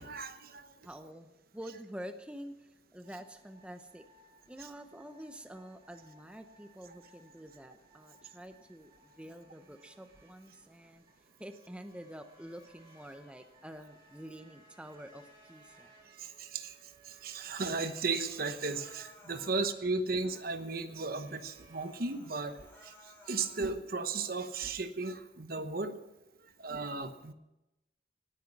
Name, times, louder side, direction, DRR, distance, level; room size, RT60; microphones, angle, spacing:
voice 1, 0.0-0.7 16.2-16.7 17.0-22.9 23.2-26.0 26.6-27.3, right 3 dB, 55° right, 10 dB, 1.0 m, -35 dB
voice 2, 0.8-4.1 4.5-11.0 11.4-15.9, equal, 5° right, 7 dB, 0.8 m, -48 dB
sound 1, 3.0-23.0, right 2 dB, 30° right, 6.4 m, -63 dB
Human voice, 17.7-19.8 20.2-20.8 21.3-21.4 21.7-23.8 24.2-24.8, left 2 dB, 10° left, 3.4 m, -59 dB
19.5 x 9.2 x 6.1 m, 0.94 s
head